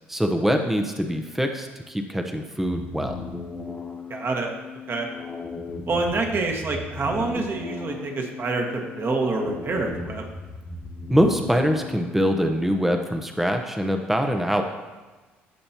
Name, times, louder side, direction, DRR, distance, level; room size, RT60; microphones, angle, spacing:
voice 1, 0.1-3.2 11.1-14.6, equal, 5° right, 4 dB, 0.8 m, -23 dB
sound 1, 2.6-12.6, left 3 dB, 15° left, 1.3 m, -36 dB
voice 2, 4.1-4.5 4.9-5.1 5.9-10.3, right 3 dB, 40° right, 1 dB, 1.7 m, -27 dB
14.5 x 5.5 x 2.9 m, 1.3 s
hypercardioid pair, 55°, 6 cm